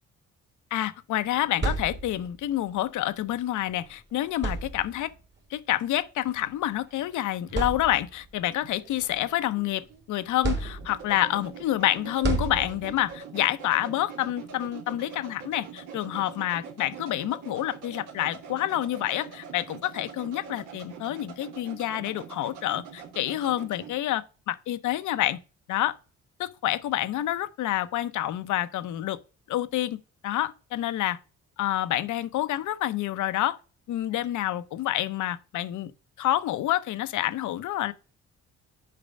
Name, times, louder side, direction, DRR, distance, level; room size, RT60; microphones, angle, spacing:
voice 1, 0.7-5.1 5.5-25.4 25.7-25.9 26.4-29.2 29.5-30.0 30.2-31.2 31.6-33.6 33.9-35.9 36.2-37.9, left 14 dB, 75° left, 0.7 m, -28 dB
sound 1, 1.3-2.4 3.7-3.8 4.3-5.2 6.3-6.4 7.0-7.1 7.5-8.3 8.8-9.9 10.4-11.2 12.2-13.1, right 3 dB, 35° right, 1.5 m, -32 dB
sound 2, 8.6-24.0, right 6 dB, 90° right, 1.5 m, -44 dB
6.7 x 5.0 x 5.2 m
cardioid pair, 90°, 30 cm